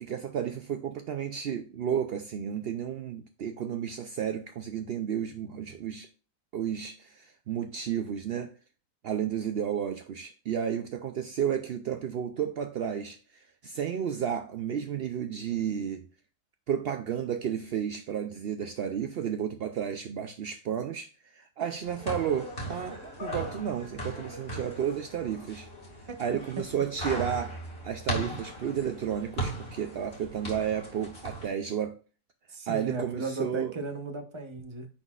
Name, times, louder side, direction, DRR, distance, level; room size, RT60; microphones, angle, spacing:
voice 1, 0.0-6.1 6.5-8.6 9.0-16.1 16.7-25.7 26.2-32.0 32.7-33.7, right 8 dB, 70° right, 0.5 m, -32 dB
sound 1, 21.8-31.5, right 1 dB, 40° left, 2.4 m, -38 dB
voice 2, 32.5-34.9, right 3 dB, 25° right, 0.8 m, -36 dB
9.8 x 4.0 x 2.4 m
omnidirectional pair, 1.6 m